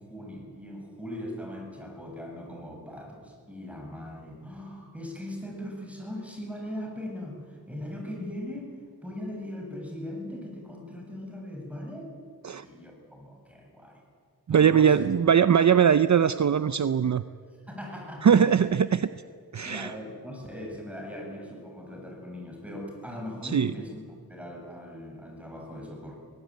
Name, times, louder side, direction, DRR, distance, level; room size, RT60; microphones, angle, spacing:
voice 1, 0.0-12.2 12.5-14.0 14.5-15.6 17.7-18.5 19.6-24.0 24.3-26.1, left 1 dB, 5° right, 0 dB, 7.8 m, -40 dB
voice 2, 14.5-17.2 18.2-19.1 19.5-19.9 23.4-23.7, right 7 dB, 50° right, 13 dB, 0.6 m, -21 dB
23.5 x 18.5 x 9.2 m, 2.1 s
wide cardioid pair, 95°, 37 cm